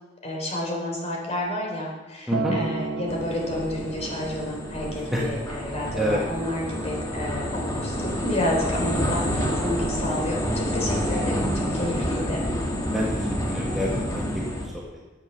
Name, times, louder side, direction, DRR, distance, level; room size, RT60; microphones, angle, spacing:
voice 1, 0.2-12.4, left 1 dB, 35° left, -2 dB, 3.5 m, -30 dB
Acoustic guitar, 2.3-6.6 7.4-7.5, right 4 dB, 60° right, 0.8 m, -34 dB
sound 1, 3.1-14.7, equal, 20° left, 1.7 m, -28 dB
voice 2, 12.9-14.7, equal, ahead, -4 dB, 1.3 m, -27 dB
10.5 x 7.9 x 6.8 m, 1.3 s
head